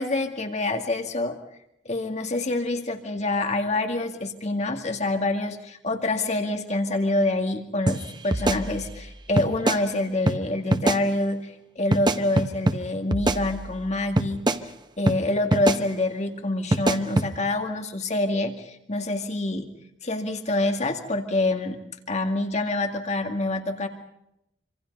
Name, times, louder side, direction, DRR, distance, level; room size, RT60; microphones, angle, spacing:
voice 1, 0.0-1.4 1.9-14.7 15.0-19.7 20.0-21.8 22.1-23.9, left 2 dB, 40° left, 4 dB, 2.1 m, -26 dB
sound 1, 7.9-8.0 8.3-9.1 9.4-9.8 10.3-10.4 10.7-11.0 11.9-12.8 13.1-13.8 14.2-14.6 15.1-15.2 15.5-15.8 16.7-17.3, right 2 dB, 25° right, 1.0 m, -23 dB
26.0 x 26.0 x 5.4 m, 0.82 s
head